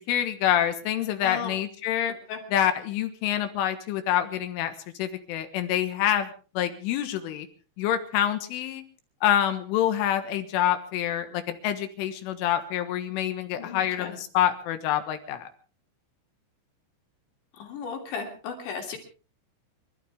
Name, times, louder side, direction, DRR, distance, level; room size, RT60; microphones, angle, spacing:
voice 1, 0.1-2.2 2.5-4.7 5.0-6.3 6.6-7.5 7.8-8.8 9.2-15.5, left 11 dB, 85° left, 8 dB, 3.9 m, -26 dB
voice 2, 1.2-1.5 2.3-2.4 13.6-14.2 17.6-19.0, left 6 dB, 65° left, 3 dB, 5.2 m, -35 dB
29.5 x 12.5 x 3.6 m, 0.37 s
omnidirectional pair, 5.6 m